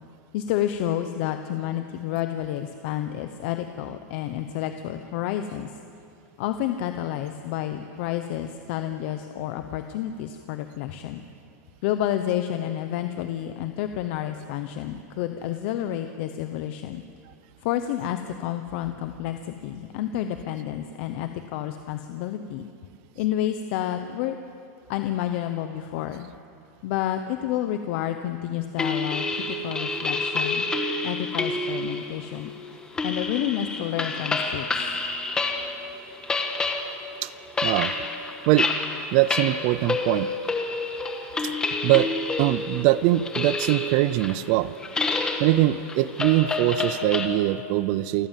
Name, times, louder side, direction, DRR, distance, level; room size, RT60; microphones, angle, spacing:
voice 1, 0.3-5.8 6.4-11.2 11.8-17.0 17.6-22.7 23.2-24.4 24.9-26.3 26.8-30.7 31.0-32.5 33.0-34.7, left 11 dB, 45° left, 8 dB, 0.9 m, -30 dB
sound 1, 28.8-35.8 36.1-47.3, left 3 dB, 10° left, 1.5 m, -29 dB
voice 2, 37.6-37.9 38.5-38.7 39.1-40.3 41.4-41.5 41.8-44.7 45.4-48.3, right 16 dB, 40° right, 17 dB, 0.5 m, -22 dB
28.5 x 14.5 x 7.5 m, 2.5 s
supercardioid pair, 170°, 8 cm